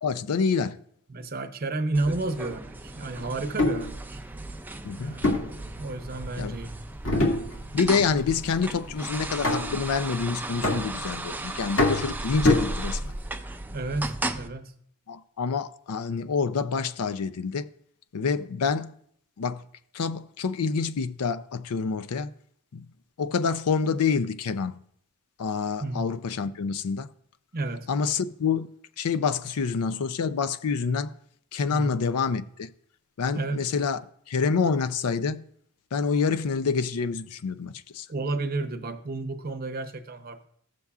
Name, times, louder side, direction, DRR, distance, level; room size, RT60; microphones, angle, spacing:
voice 1, 0.0-0.8 4.8-5.1 6.4-6.6 7.7-13.1 15.1-17.7 18.1-18.9 19.4-19.6 19.9-22.3 22.7-22.9 23.2-24.8 25.4-27.1 27.9-28.7 29.0-31.1 31.5-32.7 33.2-34.0 34.3-35.4 35.9-38.1, left 5 dB, 80° left, 0.5 m, -27 dB
voice 2, 1.1-4.2 4.9-5.3 5.8-6.7 13.7-14.7 25.8-26.1 27.5-27.9 31.7-31.9 33.3-33.6 38.1-40.5, right 2 dB, 40° right, 0.7 m, -31 dB
sound 1, 1.9-14.5, right 2 dB, 10° right, 0.3 m, -36 dB
sound 2, 3.4-3.9 5.2-6.3 7.1-7.9 8.2-8.6 9.4-9.9 10.6-11.3 11.8-13.2, left 2 dB, 65° left, 1.9 m, -25 dB
15.0 x 6.8 x 2.4 m
head